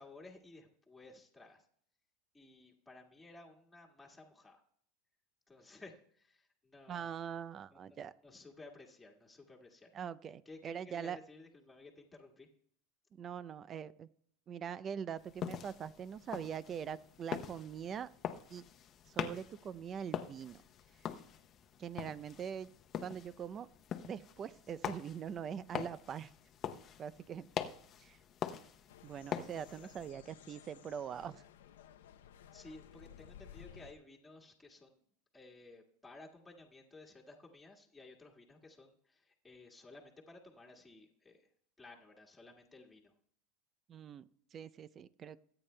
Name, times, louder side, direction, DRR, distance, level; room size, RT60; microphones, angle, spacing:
voice 1, 0.0-1.7 2.3-4.6 5.5-7.1 7.7-7.8 8.2-9.9 10.4-12.5 29.8-29.9 32.5-35.0 35.3-41.5 41.8-43.1, left 2 dB, 10° left, -3 dB, 1.7 m, -56 dB
voice 2, 6.9-8.1 9.9-11.2 13.1-14.1 14.5-18.1 18.5-18.6 19.1-20.6 21.8-22.7 23.0-23.7 24.0-26.3 27.0-27.5 28.0-28.2 29.0-31.4 43.9-44.2 44.5-45.4, right 8 dB, 35° right, 16 dB, 0.5 m, -43 dB
sound 1, 15.2-30.1, left 9 dB, 35° left, 0.7 m, -44 dB
sound 2, 28.9-33.9, left 9 dB, 85° left, 0.6 m, -56 dB
22.5 x 8.9 x 2.2 m, 0.64 s
supercardioid pair, 115°, 0 cm